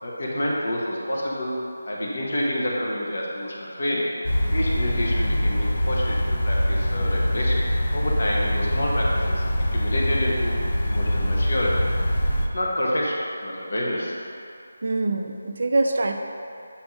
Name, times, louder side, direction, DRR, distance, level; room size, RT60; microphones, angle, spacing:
voice 1, 0.0-1.5 1.9-4.1 4.5-6.2 6.4-7.6 7.9-9.4 9.7-10.6 10.8-11.7 12.5-14.1, left 1 dB, 50° left, -4 dB, 1.1 m, -28 dB
sound 1, 4.2-12.5, equal, 35° left, 0.5 m, -23 dB
voice 2, 14.8-16.1, right 2 dB, 40° right, 4 dB, 0.4 m, -24 dB
7.0 x 3.5 x 5.0 m, 2.6 s
figure-of-eight pair, 180°, 0 cm